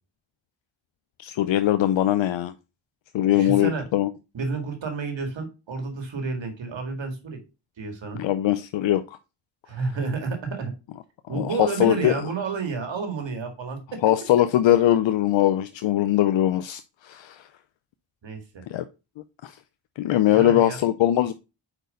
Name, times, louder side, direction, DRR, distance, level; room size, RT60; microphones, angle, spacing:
voice 1, 1.2-2.5 3.1-4.1 8.1-9.0 11.3-12.2 14.0-17.5 18.7-18.8 19.4-19.5 20.0-21.3, left 13 dB, 75° left, 0.6 m, -21 dB
voice 2, 3.3-3.9 4.3-7.4 7.8-8.2 9.7-10.7 11.3-14.0 18.2-18.6 20.3-20.8, right 4 dB, 70° right, 2.0 m, -30 dB
5.0 x 4.5 x 5.1 m
cardioid pair, 50°, 46 cm